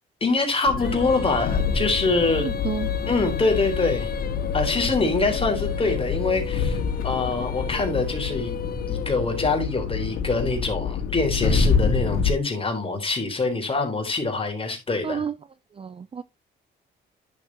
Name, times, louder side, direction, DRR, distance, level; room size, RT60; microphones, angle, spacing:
voice 1, 0.2-2.5 3.1-4.1 4.5-8.5 8.9-15.2, left 3 dB, 30° left, 4.0 m, -24 dB
sound 1, 0.7-12.3, left 5 dB, 90° left, 1.9 m, -27 dB
Female singing, 0.8-9.9, left 8 dB, 50° left, 1.0 m, -35 dB
voice 2, 2.4-2.9 15.0-15.3 15.8-16.2, right 6 dB, 30° right, 0.5 m, -30 dB
Animal, 4.3-8.4, right 4 dB, 85° right, 6.1 m, -51 dB
10.5 x 7.1 x 2.9 m
cardioid pair, 90°, 20 cm